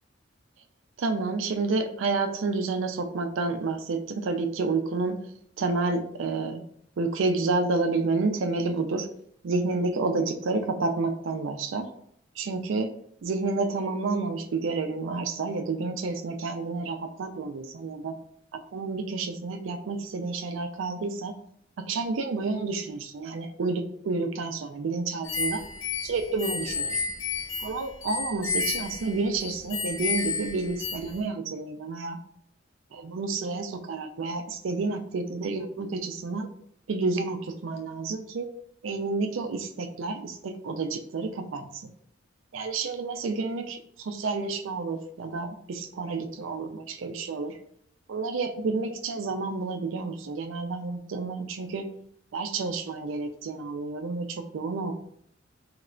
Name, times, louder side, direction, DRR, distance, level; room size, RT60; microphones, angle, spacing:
voice 1, 1.0-5.2 5.6-6.6 7.0-9.1 9.4-11.9 12.4-12.9 13.2-18.1 18.7-21.3 21.9-25.6 26.0-27.0 27.6-32.2 32.9-36.5 36.9-38.5 38.8-41.9 42.5-47.6 48.1-51.8 52.3-54.9, right 3 dB, 75° right, 7 dB, 0.4 m, -30 dB
sound 1, 25.2-31.2, left 5 dB, 85° left, 0.6 m, -32 dB
3.2 x 2.8 x 2.5 m, 0.68 s
head